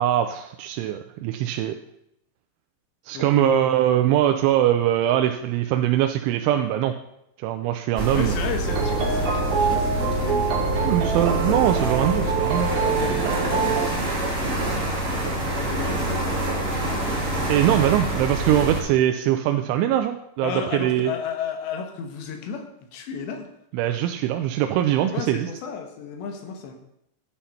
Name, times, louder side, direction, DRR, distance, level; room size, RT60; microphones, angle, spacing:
voice 1, 0.0-1.8 3.1-6.9 7.4-8.3 10.8-12.7 17.5-21.1 23.7-25.5, right 12 dB, 85° right, 6 dB, 3.1 m, -22 dB
voice 2, 3.1-4.1 8.1-11.4 12.8-17.0 20.4-23.5 25.1-26.7, left 6 dB, 70° left, 4 dB, 3.6 m, -34 dB
sound 1, 8.0-18.8, right 1 dB, 25° right, 1.7 m, -26 dB
sound 2, 8.7-13.9, right 5 dB, 60° right, 3.5 m, -25 dB
11.5 x 9.0 x 5.7 m, 0.79 s
omnidirectional pair, 5.4 m